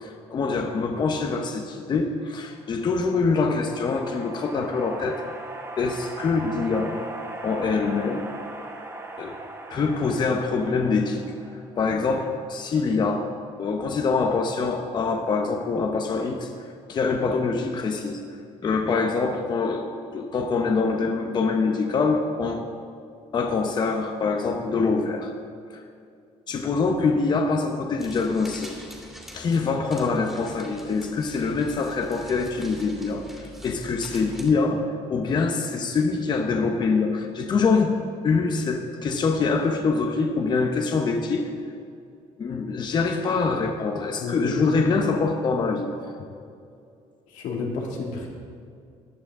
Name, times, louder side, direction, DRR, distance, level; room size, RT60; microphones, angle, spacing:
voice 1, 0.0-5.2 5.8-7.0 7.4-8.3 9.2-9.4 9.7-11.2 11.8-13.3 13.6-22.7 23.3-25.3 25.7-25.8 26.5-28.7 29.3-34.8 35.1-37.9 38.2-41.5 42.4-45.9, left 4 dB, 35° left, 4 dB, 0.8 m, -24 dB
sound 1, 2.5-12.1, right 2 dB, 20° right, 0.9 m, -39 dB
sound 2, 28.0-34.5, equal, 5° right, 2.3 m, -44 dB
voice 2, 44.2-44.9 47.3-48.3, left 3 dB, 90° left, -1 dB, 2.4 m, -30 dB
15.5 x 11.0 x 3.7 m, 2.4 s
cardioid pair, 135°, 13 cm